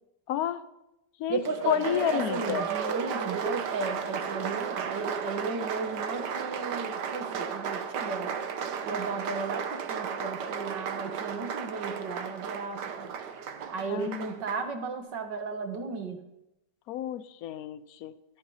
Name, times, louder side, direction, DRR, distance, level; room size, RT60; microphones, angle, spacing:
voice 1, 0.3-0.6 1.2-2.7 13.9-14.4 16.9-18.2, left 10 dB, 65° left, 14 dB, 1.1 m, -31 dB
voice 2, 1.3-8.4 8.8-13.2 13.7-16.2, right 4 dB, 90° right, 6 dB, 2.2 m, -34 dB
Applause, 1.4-14.7, right 7 dB, 75° right, 1.6 m, -34 dB
13.5 x 13.5 x 5.6 m, 0.89 s
omnidirectional pair, 1.8 m